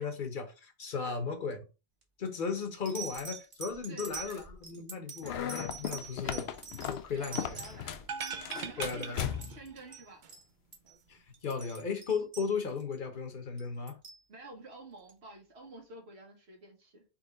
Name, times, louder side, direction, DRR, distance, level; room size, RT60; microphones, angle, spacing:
voice 1, 0.0-1.6 2.2-6.5 6.8-7.6 8.8-9.2 11.1-14.0, left 5 dB, 55° left, 1.1 m, -36 dB
sound 1, 2.0-2.3 2.8-9.0 9.3-9.7 9.9-10.0 10.3-10.5 10.7-10.9 11.3-12.9 13.6-14.2 15.1-15.2, right 5 dB, 40° right, 1.4 m, -45 dB
voice 2, 3.9-4.4 6.2-6.5 7.1-8.0 8.5-9.2 9.5-10.2 14.3-17.0, right 2 dB, 85° right, 1.6 m, -49 dB
sound 2, 5.2-8.1 8.4-9.7, left 9 dB, 80° left, 0.8 m, -37 dB
sound 3, 8.0-10.0 10.2-10.3, right 6 dB, 55° right, 0.7 m, -40 dB
4.4 x 3.2 x 3.8 m
omnidirectional pair, 1.0 m